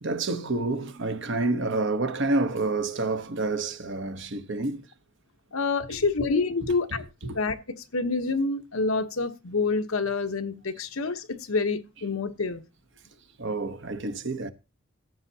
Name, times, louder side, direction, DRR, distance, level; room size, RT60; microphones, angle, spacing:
voice 1, 0.0-4.8 6.6-7.4 13.4-14.5, right 3 dB, 60° right, 1.0 m, -29 dB
voice 2, 5.5-7.0 7.3-7.6 7.9-12.6, left 4 dB, 80° left, 1.1 m, -27 dB
14.5 x 8.2 x 2.8 m
head